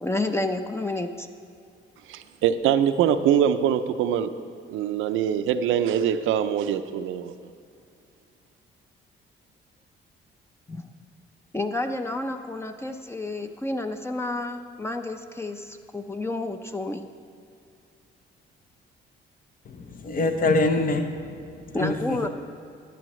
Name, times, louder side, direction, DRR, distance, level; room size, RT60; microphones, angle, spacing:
voice 1, 0.0-1.3 10.7-11.0 11.5-17.1 21.7-22.3, left 2 dB, 15° left, 7 dB, 0.6 m, -30 dB
voice 2, 2.1-4.3 4.7-7.3, right 9 dB, 90° right, 11 dB, 0.5 m, -23 dB
voice 3, 19.7-21.1 21.8-22.3, left 2 dB, 45° left, 7 dB, 0.8 m, -24 dB
14.0 x 9.8 x 3.1 m, 2.5 s
cardioid pair, 90°, 20 cm